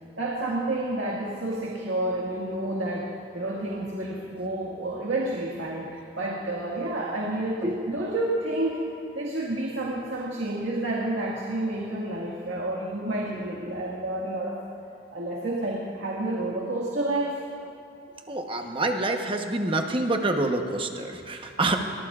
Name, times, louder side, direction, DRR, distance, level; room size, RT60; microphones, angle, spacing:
voice 1, 0.2-8.9 9.2-14.6 15.1-17.5, right 1 dB, 85° right, -4 dB, 1.8 m, -30 dB
voice 2, 18.3-21.8, right 2 dB, 30° right, 4 dB, 1.0 m, -27 dB
22.0 x 19.0 x 2.4 m, 2.9 s
head